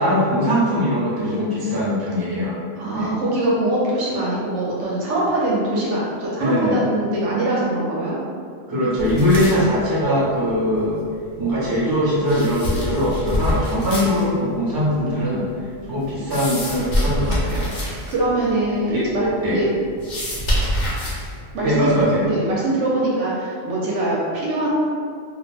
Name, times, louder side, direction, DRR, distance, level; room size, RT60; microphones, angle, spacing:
voice 1, 0.0-2.6 2.9-3.1 6.4-6.8 8.7-11.0 11.4-15.4 15.9-17.7 18.9-19.0 19.4-19.6 21.6-22.2, equal, 25° right, -8 dB, 0.4 m, -21 dB
voice 2, 2.8-8.1 17.9-19.6 21.5-21.9 22.2-24.7, right 1 dB, 65° right, -6 dB, 0.8 m, -23 dB
sound 1, 9.0-22.1, equal, 50° left, 0.6 m, -28 dB
2.4 x 2.1 x 3.2 m, 2.2 s
omnidirectional pair, 1.4 m